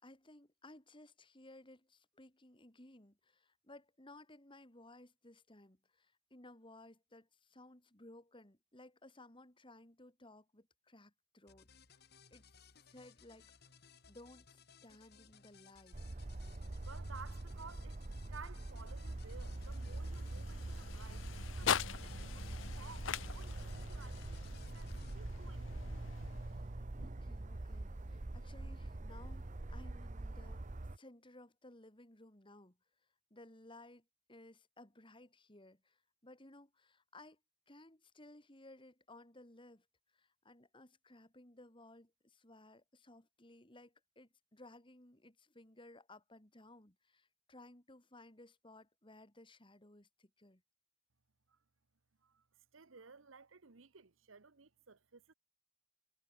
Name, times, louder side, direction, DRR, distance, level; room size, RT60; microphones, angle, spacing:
voice 1, 0.0-11.7 12.3-12.5 12.9-13.5 14.1-16.0 26.4-26.7 27.0-30.6 31.0-32.8 33.3-37.4 37.7-39.8 40.1-50.6, left 2 dB, 25° left, 2.9 m, -59 dB
sound 1, 11.5-25.2, left 6 dB, 55° left, 1.7 m, -63 dB
sound 2, 15.9-31.0, right 2 dB, 40° right, 0.8 m, -44 dB
voice 2, 16.8-25.7 51.5-51.6 52.2-52.4 52.7-55.3, right 5 dB, 90° right, 1.1 m, -56 dB
sound 3, 18.7-26.9, left 8 dB, 75° left, 0.6 m, -43 dB
head